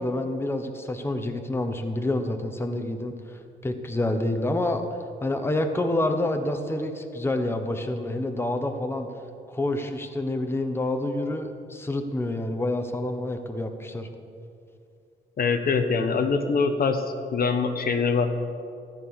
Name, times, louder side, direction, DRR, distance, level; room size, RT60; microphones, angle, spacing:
voice 1, 0.0-4.8 5.2-9.1 9.5-14.1, left 1 dB, 10° left, 5 dB, 1.2 m, -28 dB
voice 2, 15.4-17.0 17.3-18.3, left 5 dB, 50° left, 6 dB, 1.1 m, -23 dB
14.0 x 9.1 x 6.4 m, 2.4 s
cardioid pair, 90°, 20 cm